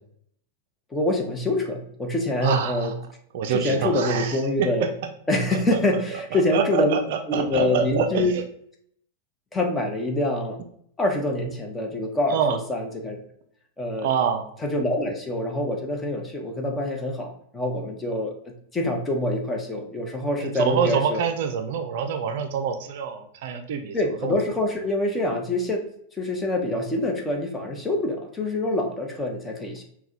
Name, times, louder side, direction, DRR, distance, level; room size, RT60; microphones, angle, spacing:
voice 1, 0.9-2.9 3.5-4.9 5.3-7.0 7.3-8.3 9.5-10.6 11.0-12.4 12.7-13.2 13.8-14.1 14.6-18.3 18.7-21.2 23.9-25.8 26.2-29.8, left 1 dB, 15° left, 3 dB, 0.8 m, -25 dB
voice 2, 2.4-2.9 3.3-4.7 5.5-5.6 6.1-8.4 12.3-12.6 14.0-14.4 20.4-24.0 24.2-24.3, right 7 dB, 60° right, 7 dB, 0.4 m, -26 dB
5.8 x 2.2 x 2.7 m, 0.69 s
figure-of-eight pair, 95°, 0 cm